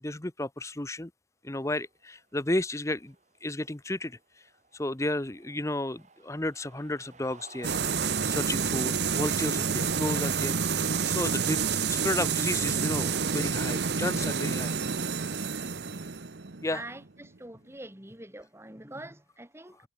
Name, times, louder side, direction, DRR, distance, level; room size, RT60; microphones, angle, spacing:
voice 1, 0.0-1.1 1.4-3.1 3.4-4.2 4.7-7.8 8.3-10.6 11.1-14.7 16.6-16.8, left 1 dB, 15° left, 1.0 m, -32 dB
sound 1, 1.8-17.4, right 3 dB, 40° right, 6.8 m, -60 dB
sound 2, 7.6-17.3, right 6 dB, 75° right, 1.1 m, -29 dB
voice 2, 16.7-19.8, right 1 dB, 15° right, 2.6 m, -44 dB
head